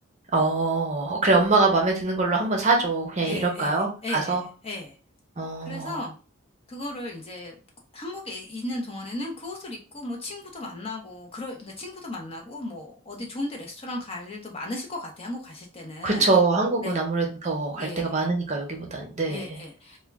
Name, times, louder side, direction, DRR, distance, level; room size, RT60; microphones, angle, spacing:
voice 1, 0.3-4.4 5.4-6.1 16.0-19.6, right 3 dB, 35° right, 0 dB, 0.6 m, -24 dB
voice 2, 3.2-4.9 5.6-6.1 6.7-7.6 7.9-16.3 16.8-17.0 17.7-18.1 19.3-20.0, left 2 dB, 30° left, 1 dB, 0.5 m, -36 dB
2.2 x 2.1 x 3.4 m, 0.35 s
head